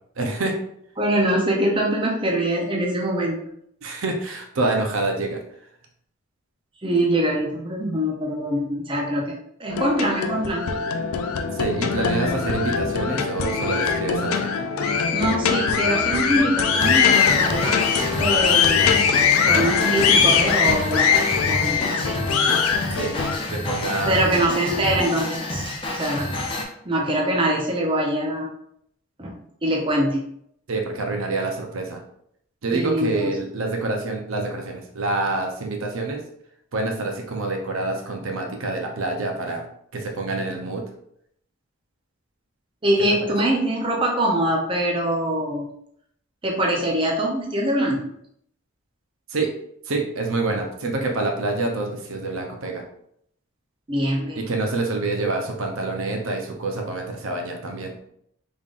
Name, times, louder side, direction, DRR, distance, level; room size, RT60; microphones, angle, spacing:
voice 1, 0.2-0.6 3.8-5.4 11.5-14.7 15.0-15.1 22.9-23.2 23.5-24.3 30.7-32.0 32.6-36.2 36.7-40.8 49.3-49.5 49.9-52.8 54.3-58.0, right 2 dB, 75° right, 2 dB, 0.7 m, -27 dB
voice 2, 1.0-3.4 6.8-10.7 14.8-19.0 19.4-22.2 24.1-26.4 26.9-28.5 29.2-30.2 32.7-33.3 42.8-45.7 46.4-48.0 53.9-54.4, right 1 dB, 25° right, -1 dB, 0.6 m, -23 dB
sound 1, 9.7-23.4, left 6 dB, 90° left, 0.4 m, -21 dB
sound 2, 16.8-26.6, left 1 dB, 25° left, 0.5 m, -29 dB
3.7 x 3.5 x 2.4 m, 0.71 s
head